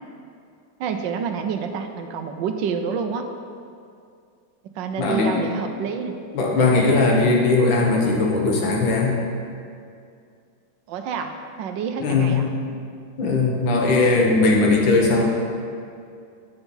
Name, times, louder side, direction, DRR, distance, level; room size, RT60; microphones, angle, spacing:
voice 1, 0.8-3.3 4.7-6.2 10.9-12.5, right 6 dB, 80° right, 6 dB, 1.3 m, -28 dB
voice 2, 5.0-5.4 6.3-9.2 12.0-12.4 13.2-15.3, left 3 dB, 75° left, 0 dB, 1.8 m, -19 dB
9.6 x 6.7 x 4.3 m, 2.4 s
omnidirectional pair, 2.0 m